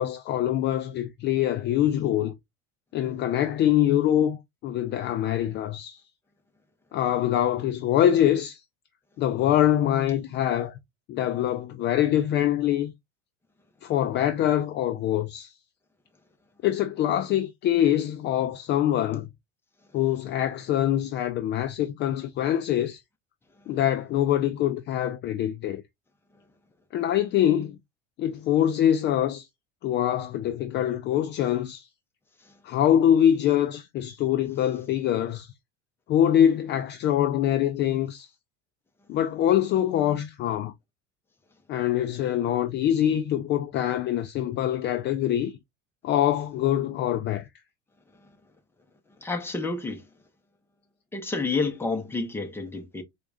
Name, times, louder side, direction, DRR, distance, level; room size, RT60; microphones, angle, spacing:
voice 1, 0.0-2.3 2.9-4.4 4.6-6.0 6.9-8.6 9.2-10.8 11.1-12.9 13.8-15.5 16.6-19.3 19.9-23.0 23.7-25.8 26.9-27.8 28.2-29.5 29.8-31.9 32.6-35.5 36.1-38.3 39.1-40.7 41.7-45.6 46.0-47.5, left 11 dB, 35° left, 0.4 m, -24 dB
voice 2, 49.2-50.0 51.1-53.0, left 3 dB, 5° left, 0.8 m, -29 dB
4.6 x 2.4 x 2.5 m
supercardioid pair, 135°, 31 cm